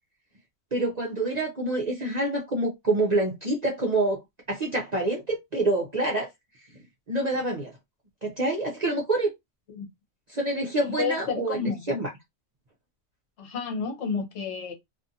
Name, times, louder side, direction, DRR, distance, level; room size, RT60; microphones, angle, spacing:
voice 1, 0.7-4.2 4.5-6.3 7.1-7.7 8.2-9.3 10.3-12.1, right 2 dB, 45° right, 0.6 m, -26 dB
voice 2, 10.8-11.8 13.4-14.7, left 5 dB, 65° left, 1.1 m, -30 dB
2.6 x 2.5 x 2.6 m
omnidirectional pair, 1.4 m